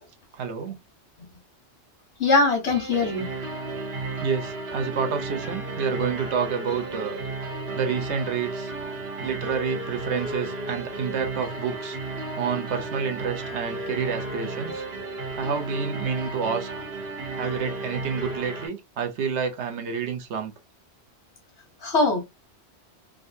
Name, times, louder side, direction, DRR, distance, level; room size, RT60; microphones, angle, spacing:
voice 1, 0.3-0.8 4.2-7.2 7.7-8.7 9.2-12.0 12.4-14.8 15.4-16.7 17.3-20.5, right 6 dB, 80° right, 1.1 m, -29 dB
voice 2, 2.2-3.3 21.8-22.2, left 3 dB, 85° left, 1.3 m, -21 dB
sound 1, 2.7-18.7, right 2 dB, 65° right, 1.5 m, -33 dB
3.7 x 2.3 x 2.6 m
omnidirectional pair, 1.1 m